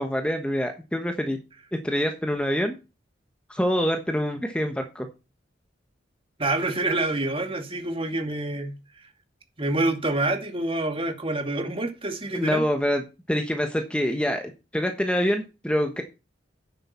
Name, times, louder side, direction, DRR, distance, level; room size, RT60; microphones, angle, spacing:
voice 1, 0.0-1.4 1.8-2.7 3.5-5.1 12.3-13.0 13.3-16.0, equal, 5° left, 1.2 m, -25 dB
voice 2, 6.4-8.7 9.6-12.6, right 2 dB, 30° right, 2.3 m, -27 dB
9.8 x 7.7 x 4.4 m
head